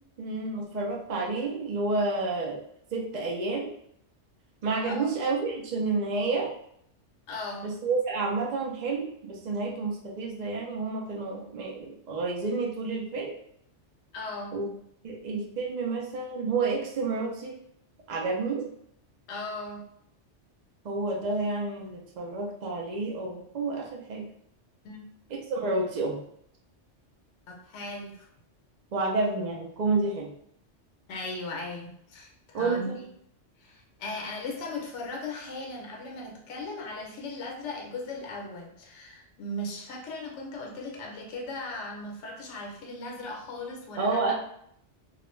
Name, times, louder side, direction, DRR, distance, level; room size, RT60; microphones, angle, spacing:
voice 1, 0.2-2.6 2.9-3.7 4.6-6.5 7.6-13.3 14.5-14.7 15.0-17.6 18.1-18.7 20.8-24.2 25.5-26.2 28.9-30.3 32.5-33.0 44.0-44.3, right 3 dB, 60° right, -2 dB, 0.4 m, -30 dB
voice 2, 7.3-7.7 14.1-14.6 19.3-19.9 24.8-25.0 27.5-28.3 31.1-32.9 33.6-44.3, left 2 dB, 80° left, 0 dB, 0.9 m, -37 dB
2.4 x 2.1 x 3.0 m, 0.69 s
omnidirectional pair, 1.2 m